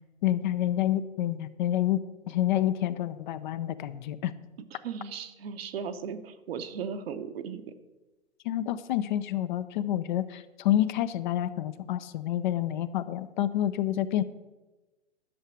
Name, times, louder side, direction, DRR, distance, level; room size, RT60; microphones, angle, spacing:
voice 1, 0.2-2.0 2.3-4.3 8.4-14.2, left 12 dB, 45° left, 13 dB, 0.6 m, -28 dB
voice 2, 4.7-7.7, right 6 dB, 55° right, 8 dB, 1.0 m, -37 dB
11.5 x 6.6 x 6.2 m, 1.1 s
figure-of-eight pair, 115°, 35 cm